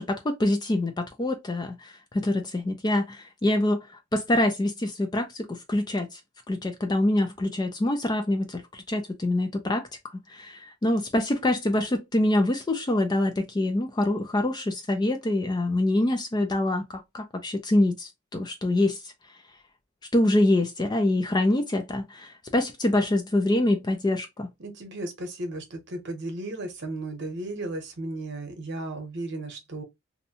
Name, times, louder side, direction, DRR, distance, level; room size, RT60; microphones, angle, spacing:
voice 1, 0.0-3.9 4.1-6.2 6.5-9.9 10.3-19.1 20.1-24.5, left 1 dB, 20° left, 0.3 m, -25 dB
voice 2, 24.6-29.8, right 2 dB, 55° right, 0.9 m, -35 dB
2.6 x 2.1 x 2.7 m
head